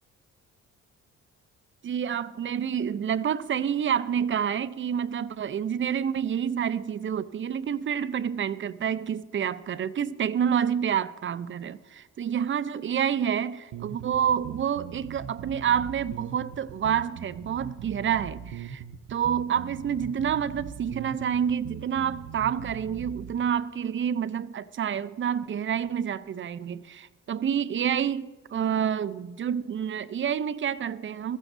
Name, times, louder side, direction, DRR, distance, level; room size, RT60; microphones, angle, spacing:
voice 1, 1.8-18.8 19.1-31.4, right 8 dB, 40° right, 0.6 m, -28 dB
sound 1, 13.7-23.3, right 8 dB, 80° right, 0.8 m, -40 dB
21.0 x 15.0 x 2.6 m
cardioid pair, 90°, 30 cm